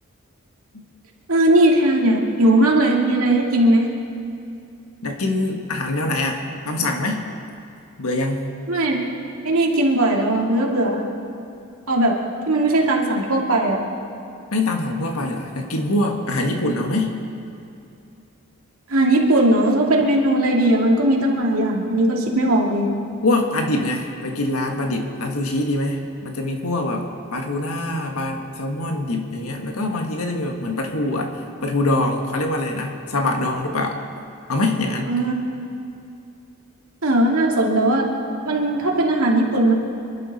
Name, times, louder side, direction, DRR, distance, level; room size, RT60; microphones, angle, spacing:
voice 1, 1.3-3.9 8.7-9.1 9.4-11.0 11.9-12.2 12.5-13.8 18.9-22.9 35.1-35.4 37.0-38.1 38.4-39.7, right 1 dB, 75° right, -1 dB, 2.5 m, -18 dB
voice 2, 5.0-7.2 8.0-8.5 14.5-17.1 23.2-27.0 27.3-31.3 31.6-34.0 34.5-35.1, left 2 dB, 90° left, 3 dB, 1.6 m, -24 dB
27.5 x 12.0 x 4.2 m, 2.6 s
head